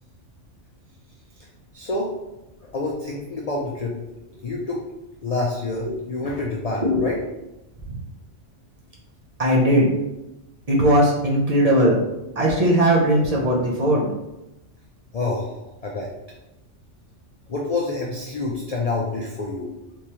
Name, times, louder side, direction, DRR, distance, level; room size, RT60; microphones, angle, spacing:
voice 1, 1.7-2.1 2.6-4.0 4.4-4.8 5.2-7.2 15.1-16.1 17.5-19.7, left 3 dB, 70° left, -2 dB, 0.3 m, -27 dB
voice 2, 9.4-9.9 10.7-12.0 12.4-14.1, equal, 40° right, -4 dB, 0.7 m, -19 dB
3.5 x 3.0 x 2.8 m, 0.95 s
omnidirectional pair, 1.3 m